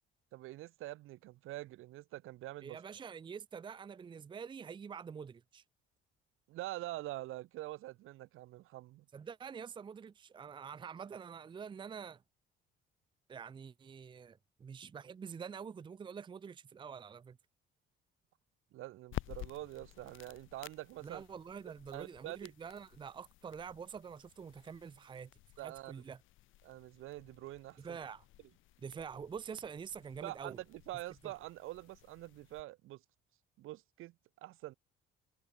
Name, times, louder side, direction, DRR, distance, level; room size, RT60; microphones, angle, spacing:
voice 1, 0.3-2.8 6.5-9.1 18.7-21.2 21.9-22.5 25.6-26.0 26.6-28.0 30.2-33.0 33.6-34.7, right 17 dB, 80° right, 2.1 m, -45 dB
voice 2, 2.6-5.6 9.1-12.2 13.3-17.4 21.0-25.3 25.6-26.2 27.8-28.2 28.8-30.6 31.2-31.3, right 6 dB, 20° right, 0.7 m, -46 dB
sound 1, 19.0-32.6, left 16 dB, 70° left, 1.0 m, -52 dB
cardioid pair, 155°, 21 cm